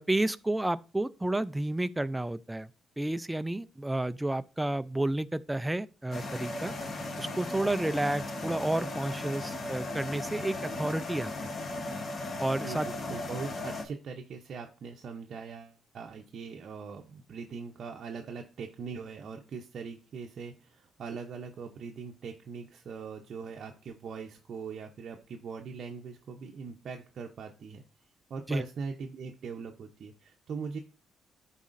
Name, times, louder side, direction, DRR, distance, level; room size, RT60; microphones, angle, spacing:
voice 1, 0.0-2.7 3.0-6.7 7.2-11.5 12.4-12.9 28.5-28.6, right 1 dB, 10° right, 0.3 m, -31 dB
sound 1, 6.1-13.8, left 2 dB, 40° left, 1.1 m, -37 dB
voice 2, 12.6-27.8 28.3-30.8, right 5 dB, 60° right, 0.6 m, -41 dB
11.0 x 4.1 x 2.5 m
cardioid pair, 90°, 0 cm